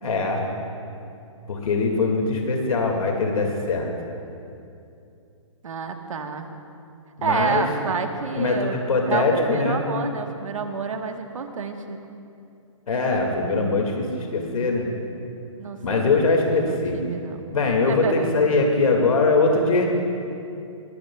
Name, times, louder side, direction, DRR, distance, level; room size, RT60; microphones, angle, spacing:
voice 1, 0.0-0.5 1.5-3.9 7.2-7.7 8.4-9.8 12.9-14.9 15.8-17.0 17.5-19.9, left 3 dB, 90° left, 2 dB, 2.1 m, -22 dB
voice 2, 5.6-6.5 7.2-12.0 15.6-16.1 16.5-17.4 17.9-18.3, right 5 dB, 75° right, 5 dB, 1.3 m, -29 dB
21.0 x 16.0 x 2.3 m, 2.6 s
hypercardioid pair, 170°, 17 cm